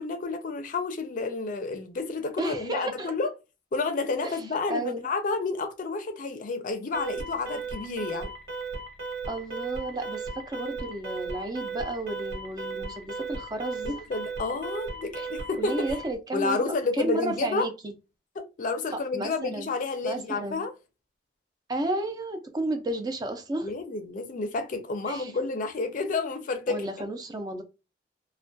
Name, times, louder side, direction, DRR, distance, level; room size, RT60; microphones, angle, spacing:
voice 1, 0.0-3.3 3.7-8.3 13.8-15.9 16.3-17.7 18.4-20.7 23.6-26.9, left 3 dB, 50° left, 0.4 m, -30 dB
voice 2, 2.4-3.1 4.2-4.4 4.7-5.1 9.3-14.0 15.2-15.3 15.6-17.9 18.9-19.7 20.0-20.6 21.7-23.7 25.1-25.3 26.7-27.6, right 2 dB, 25° right, 0.4 m, -32 dB
Alarm, 6.9-16.2, right 4 dB, 70° right, 1.2 m, -36 dB
2.3 x 2.1 x 2.5 m
head